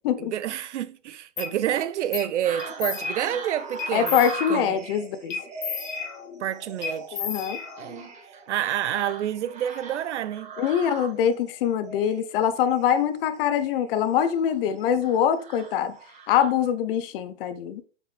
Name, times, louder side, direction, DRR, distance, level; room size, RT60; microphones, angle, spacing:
voice 1, 0.2-4.2 4.5-4.8 6.4-7.2 7.8-8.1 8.5-10.5, right 11 dB, 70° right, 0.8 m, -28 dB
sound 1, 1.4-1.5 2.1-2.3 2.6-3.4 3.8-4.8 5.3-6.4 6.8-8.1, left 6 dB, 85° left, 1.6 m, -33 dB
sound 2, 2.4-16.7, right 5 dB, 20° right, 1.8 m, -40 dB
voice 2, 3.9-5.4 7.1-7.6 10.6-16.0 16.3-17.8, left 9 dB, 50° left, 0.8 m, -24 dB
8.0 x 5.2 x 3.4 m
hypercardioid pair, 130°, 37 cm